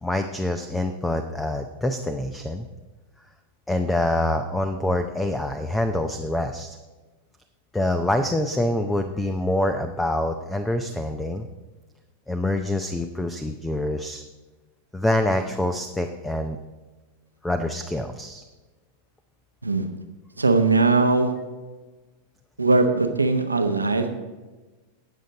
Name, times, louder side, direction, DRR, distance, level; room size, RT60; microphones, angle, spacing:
voice 1, 0.0-2.7 3.7-6.8 7.7-11.5 12.3-14.2 14.9-16.6 17.4-18.4, left 1 dB, 5° left, 8 dB, 0.6 m, -25 dB
voice 2, 20.4-21.3 22.6-24.1, right 3 dB, 80° right, 7 dB, 1.0 m, -20 dB
18.5 x 6.5 x 4.0 m, 1.2 s
figure-of-eight pair, 90°, 0 cm